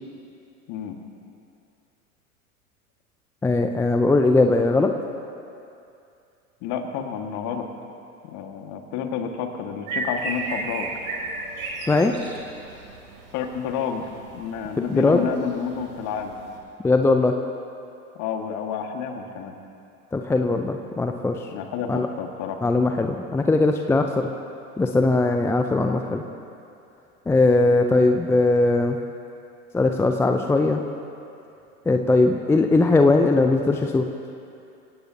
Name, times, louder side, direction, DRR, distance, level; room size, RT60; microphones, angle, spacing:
voice 1, 3.4-4.9 11.9-12.1 14.9-15.3 16.8-17.3 20.1-21.5 21.9-22.1 22.6-24.3 24.8-26.2 27.3-29.0 29.7-30.8 31.9-34.1, left 2 dB, 5° left, 5 dB, 0.5 m, -20 dB
voice 2, 6.6-7.7 8.3-10.9 13.3-14.0 14.3-16.3 18.2-19.5 21.5-22.6, left 7 dB, 40° left, 4 dB, 2.0 m, -30 dB
sound 1, 9.9-16.6, right 2 dB, 65° right, 3.5 m, -35 dB
27.5 x 17.0 x 2.9 m, 2.6 s
figure-of-eight pair, 90°, 44 cm